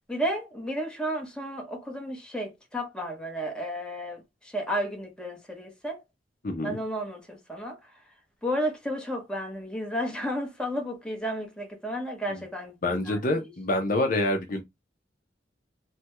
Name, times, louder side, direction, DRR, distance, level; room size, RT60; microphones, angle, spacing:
voice 1, 0.1-4.2 4.5-6.0 6.6-7.8 8.4-12.7 13.1-13.2, equal, 5° left, 0.9 m, -32 dB
voice 2, 6.4-6.8 12.3-12.4 12.8-14.6, left 1 dB, 50° left, 0.6 m, -27 dB
3.3 x 2.2 x 2.9 m
head